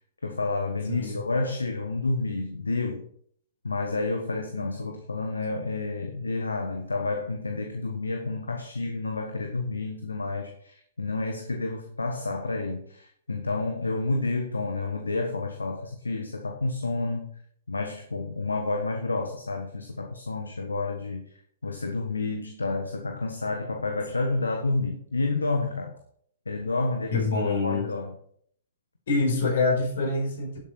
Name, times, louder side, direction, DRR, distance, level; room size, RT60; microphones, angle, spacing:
voice 1, 0.2-3.1 3.6-17.3 17.7-21.3 21.6-26.0 26.4-27.2 27.6-28.1, left 3 dB, 80° left, 1.4 m, -30 dB
voice 2, 0.9-1.2 27.1-27.9 29.1-30.6, left 3 dB, 60° left, 5.6 m, -25 dB
11.5 x 8.0 x 4.5 m
figure-of-eight pair, 115°, 0 cm